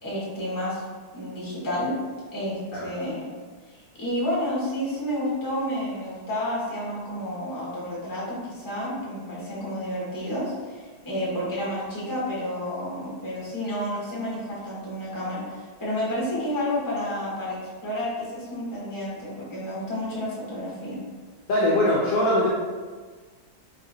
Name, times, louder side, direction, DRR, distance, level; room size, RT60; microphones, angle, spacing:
voice 1, 0.0-0.8 1.1-2.0 2.3-3.2 3.9-17.6 17.8-21.0, equal, 15° left, -7 dB, 0.9 m, -30 dB
voice 2, 21.5-22.5, left 1 dB, 60° left, -6 dB, 0.9 m, -21 dB
3.9 x 3.9 x 2.6 m, 1.4 s
omnidirectional pair, 1.9 m